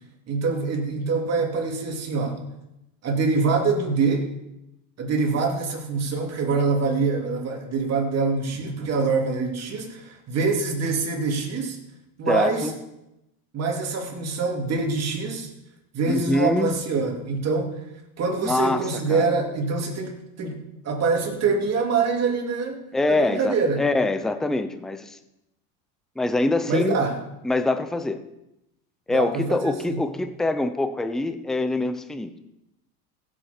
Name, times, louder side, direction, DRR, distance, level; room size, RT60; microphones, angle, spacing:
voice 1, 0.3-2.4 3.0-4.3 5.0-11.8 12.2-12.7 13.5-15.5 15.9-17.8 18.2-22.8 23.1-23.8 26.7-27.2 29.1-30.0, right 4 dB, 35° right, 1 dB, 2.9 m, -25 dB
voice 2, 12.3-12.7 16.1-16.7 18.4-18.8 19.1-19.3 22.9-25.2 26.2-27.0 27.4-28.2 29.1-32.4, left 2 dB, ahead, 9 dB, 0.5 m, -24 dB
16.0 x 8.0 x 4.4 m, 0.91 s
supercardioid pair, 135°, 47 cm